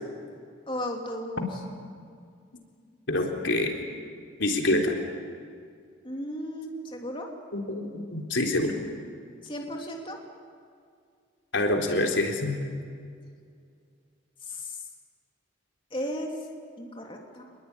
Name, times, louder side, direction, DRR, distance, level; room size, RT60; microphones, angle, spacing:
voice 1, 0.7-1.4 6.0-7.3 9.4-10.2 14.4-14.8 15.9-16.4 16.8-17.5, equal, 25° left, 1 dB, 2.9 m, -35 dB
voice 2, 3.1-3.7 4.4-5.0 7.5-8.7 11.5-12.5, left 1 dB, 75° left, 2 dB, 3.8 m, -26 dB
26.5 x 21.5 x 9.9 m, 2.2 s
head